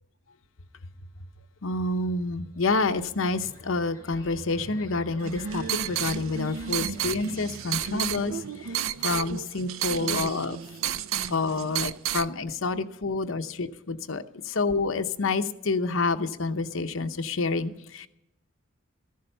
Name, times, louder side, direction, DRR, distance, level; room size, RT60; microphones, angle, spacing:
voice 1, 1.6-10.6 11.3-18.1, left 3 dB, 85° left, 9 dB, 0.8 m, -28 dB
sound 1, 2.6-9.2, left 1 dB, 15° left, 3.9 m, -47 dB
sound 2, 5.2-12.3, right 9 dB, 90° right, 0.5 m, -31 dB
14.0 x 11.5 x 5.6 m, 0.88 s
head